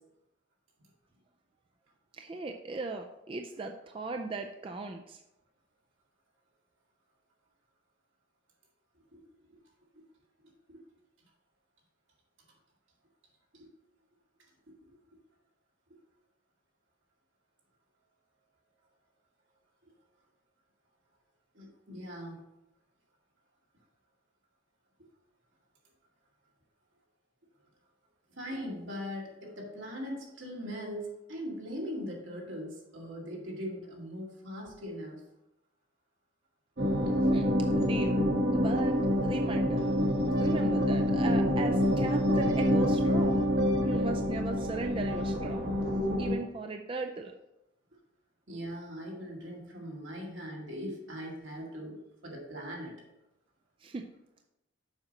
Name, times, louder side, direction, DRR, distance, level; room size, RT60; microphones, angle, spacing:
voice 1, 2.1-5.2 37.3-37.5 37.7-38.2 38.5-39.9 40.4-43.4 43.8-45.6 46.2-47.3 53.8-54.1, right 3 dB, 25° right, 4 dB, 0.3 m, -37 dB
voice 2, 21.5-22.4 28.3-35.2 48.5-52.0 52.2-52.9, equal, 80° right, -2 dB, 2.1 m, -40 dB
sound 1, 36.8-46.4, equal, 55° right, 1.3 m, -27 dB
7.2 x 5.3 x 4.0 m, 0.88 s
head